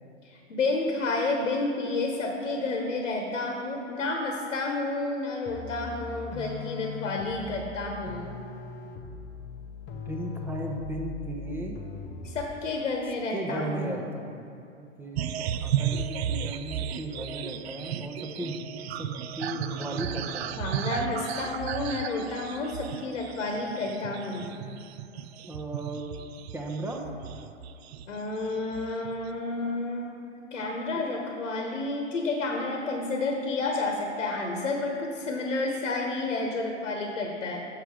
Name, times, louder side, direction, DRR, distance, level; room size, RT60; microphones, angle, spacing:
voice 1, 0.2-8.4 12.2-14.0 20.5-24.5 28.1-37.7, left 2 dB, 75° left, 2 dB, 1.1 m, -30 dB
sound 1, 5.5-12.6, left 5 dB, 30° left, 0.7 m, -40 dB
voice 2, 9.9-11.8 13.3-14.4 14.7-18.6 19.0-20.5 25.5-26.1 26.5-27.0, right 1 dB, 5° right, 1 dB, 0.7 m, -36 dB
sound 2, 15.1-28.2 28.5-29.3, right 9 dB, 60° right, 0.5 m, -34 dB
6.8 x 6.5 x 4.7 m, 2.5 s
figure-of-eight pair, 105°, 37 cm